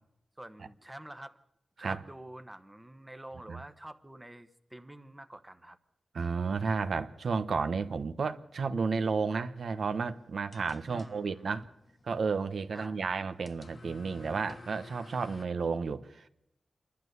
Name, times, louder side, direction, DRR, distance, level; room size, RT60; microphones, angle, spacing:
voice 1, 0.4-1.4 1.8-5.8 10.9-11.5 12.7-13.0, right 1 dB, 10° right, 1.1 m, -48 dB
voice 2, 6.1-11.7 12.0-16.3, right 5 dB, 75° right, 1.1 m, -32 dB
sound 1, 9.8-15.5, left 2 dB, 40° left, 1.4 m, -53 dB
28.0 x 11.5 x 8.1 m
wide cardioid pair, 110°, 0 cm